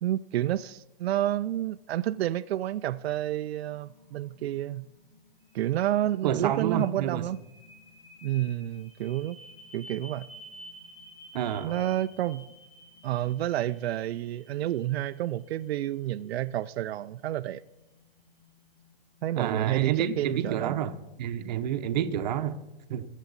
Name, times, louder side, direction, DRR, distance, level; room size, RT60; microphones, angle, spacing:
voice 1, 0.0-4.9 5.5-7.4 8.2-9.4 9.7-10.3 11.6-12.5 13.0-17.6 19.2-20.7, right 13 dB, 90° right, 0.5 m, -29 dB
sound 1, 3.7-21.1, equal, 20° left, 2.1 m, -54 dB
voice 2, 6.2-7.2 11.3-11.8 19.4-22.6 22.9-23.1, right 10 dB, 45° right, 0.8 m, -29 dB
21.0 x 7.3 x 4.0 m
hypercardioid pair, 170°, 30 cm